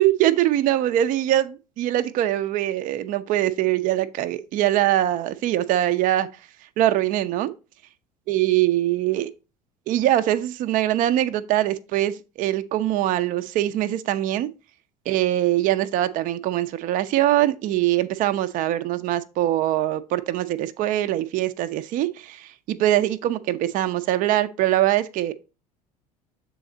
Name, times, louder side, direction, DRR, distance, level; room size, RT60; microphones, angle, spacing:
voice 1, 0.0-6.3 6.8-7.5 8.3-9.3 9.9-14.5 15.1-25.3, right 13 dB, 40° right, 0.5 m, -22 dB
6.9 x 4.0 x 3.8 m
figure-of-eight pair, 65°, 20 cm